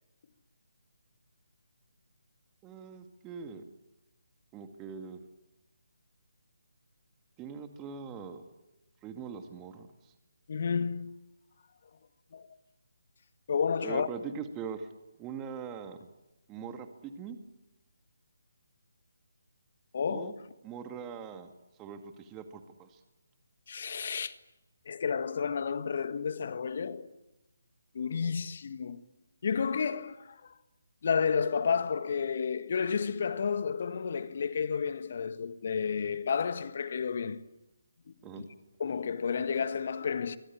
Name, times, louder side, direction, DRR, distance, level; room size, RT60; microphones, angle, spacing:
voice 1, 2.6-3.6 4.5-5.2 7.4-8.5 9.0-10.1 13.8-14.9 15.2-16.0 16.5-17.4 20.1-20.3 20.6-21.5 21.8-23.0 38.2-38.5, right 6 dB, 15° right, 2.1 m, -42 dB
voice 2, 10.5-11.1 12.3-12.5 13.5-14.1 19.9-20.3 23.7-24.3 24.8-27.1 27.9-29.0 29.4-30.5 31.0-37.4 38.4-38.5 38.8-40.4, left 6 dB, 50° left, 1.6 m, -31 dB
27.0 x 23.5 x 8.7 m
figure-of-eight pair, 150°, 0 cm